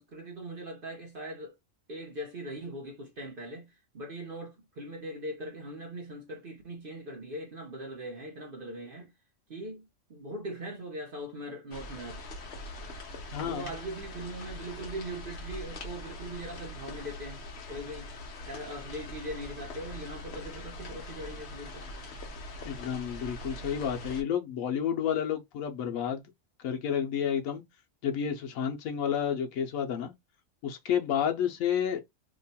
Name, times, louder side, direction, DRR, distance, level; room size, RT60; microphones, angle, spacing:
voice 1, 0.0-1.6 1.9-9.1 9.5-12.2 13.4-17.4 17.7-18.1 18.4-21.9, right 1 dB, 50° right, 0.8 m, -40 dB
sound 1, 11.7-24.2, left 1 dB, 55° left, 1.0 m, -42 dB
voice 2, 13.3-13.7 22.6-26.2 26.6-27.6 28.0-30.1 30.6-32.0, left 8 dB, 80° left, 1.0 m, -30 dB
2.9 x 2.2 x 4.0 m
omnidirectional pair, 1.4 m